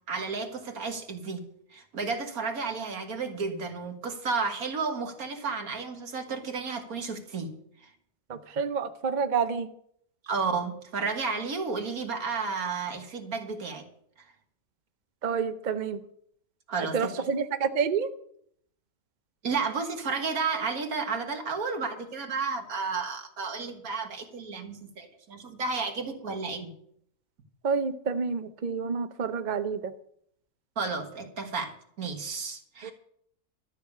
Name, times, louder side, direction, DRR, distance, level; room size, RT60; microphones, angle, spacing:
voice 1, 0.1-1.4 1.7-7.5 10.2-13.8 16.7-17.3 19.4-26.7 30.8-32.9, right 4 dB, 65° right, 4 dB, 2.0 m, -32 dB
voice 2, 8.3-9.7 15.2-16.0 16.8-18.1 27.6-29.9 32.8-32.9, right 6 dB, 45° right, 9 dB, 0.6 m, -29 dB
13.0 x 6.5 x 8.5 m, 0.69 s
omnidirectional pair, 1.6 m